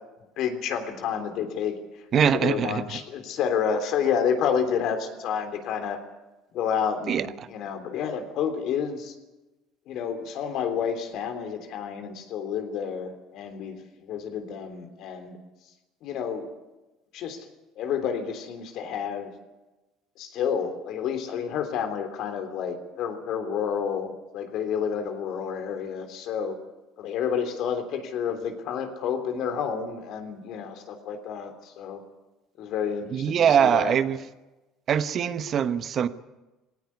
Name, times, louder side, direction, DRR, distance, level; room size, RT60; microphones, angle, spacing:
voice 1, 0.4-1.8 2.3-6.0 6.5-9.1 9.9-15.4 16.0-16.5 17.1-17.5 17.8-19.3 20.2-26.6 27.0-32.0 32.6-34.0, left 7 dB, 65° left, 7 dB, 3.4 m, -29 dB
voice 2, 2.1-2.8 7.1-7.3 33.1-34.2 34.9-36.1, right 8 dB, 50° right, 13 dB, 1.1 m, -22 dB
18.5 x 18.0 x 9.7 m, 1.1 s
supercardioid pair, 75°, 0 cm